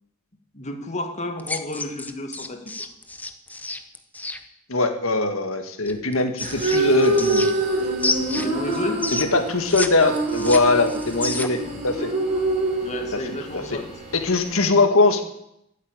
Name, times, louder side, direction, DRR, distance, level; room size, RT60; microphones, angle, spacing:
voice 1, 0.5-2.6 8.3-9.0 12.8-13.9, left 1 dB, 35° left, 5 dB, 2.0 m, -31 dB
sound 1, 1.4-4.4 5.9-7.7 8.0-9.9 10.2-11.7, left 2 dB, 10° left, 0.8 m, -29 dB
voice 2, 4.7-7.5 9.2-12.1 13.5-13.8 14.1-15.2, left 3 dB, 70° left, 6 dB, 1.9 m, -21 dB
sound 2, 6.4-14.6, right 2 dB, 35° right, 3.2 m, -26 dB
13.0 x 8.5 x 8.9 m, 0.79 s
head